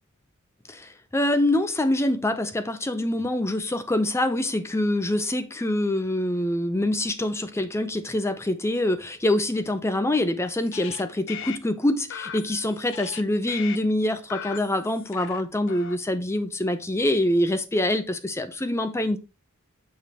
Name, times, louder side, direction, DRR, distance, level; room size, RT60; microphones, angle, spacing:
voice 1, 0.7-19.2, left 1 dB, 10° left, 0.5 m, -25 dB
sound 1, 10.6-11.0 11.3-11.6 12.1-13.2 13.5-13.8 14.3-15.4 15.7-16.0, left 8 dB, 60° left, 0.5 m, -38 dB
6.5 x 3.8 x 4.3 m
head